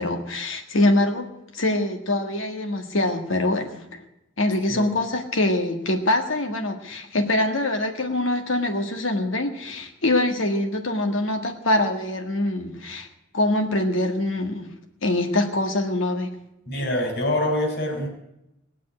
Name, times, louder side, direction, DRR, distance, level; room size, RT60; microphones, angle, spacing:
voice 1, 0.0-4.0 4.4-13.1 13.3-14.7 15.0-16.3, left 1 dB, 85° left, 4 dB, 1.7 m, -24 dB
voice 2, 16.7-18.1, left 1 dB, 60° left, 0 dB, 4.0 m, -25 dB
18.5 x 7.4 x 9.6 m, 0.88 s
head